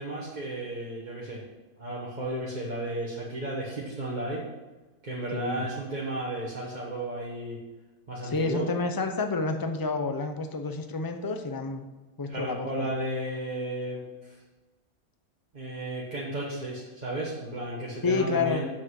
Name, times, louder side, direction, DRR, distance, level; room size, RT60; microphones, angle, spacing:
voice 1, 0.0-1.4 1.8-4.4 5.0-7.6 8.1-8.7 12.3-14.4 15.5-18.7, right 1 dB, 30° right, -6 dB, 1.5 m, -33 dB
voice 2, 5.3-5.7 8.2-11.8 12.2-12.9 18.0-18.6, left 4 dB, 25° left, 6 dB, 0.5 m, -29 dB
7.5 x 5.9 x 7.8 m, 1.2 s
omnidirectional pair, 1.5 m